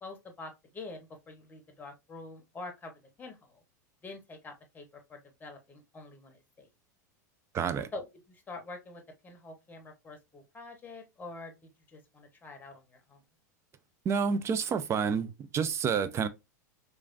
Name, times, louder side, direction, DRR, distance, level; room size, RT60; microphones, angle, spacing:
voice 1, 0.0-3.6 4.0-6.7 7.9-13.2, left 3 dB, 20° left, 0.8 m, -46 dB
voice 2, 7.5-7.9 14.1-16.3, right 6 dB, 30° right, 0.4 m, -29 dB
3.0 x 2.4 x 2.4 m
hypercardioid pair, 95°, 10 cm